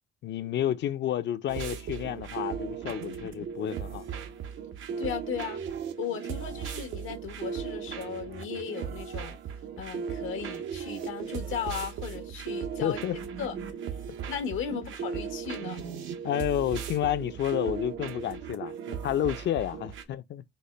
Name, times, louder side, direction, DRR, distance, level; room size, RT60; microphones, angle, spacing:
voice 1, 0.2-4.1 12.8-13.2 14.7-14.9 15.8-20.4, left 11 dB, 65° left, 0.5 m, -30 dB
sound 1, 1.5-20.0, right 7 dB, 75° right, 0.7 m, -37 dB
voice 2, 5.0-5.6 6.0-9.4 9.8-13.0 13.4-13.5 14.3-15.8, left 8 dB, 85° left, 0.9 m, -36 dB
4.1 x 2.1 x 3.2 m
cardioid pair, 90°, 20 cm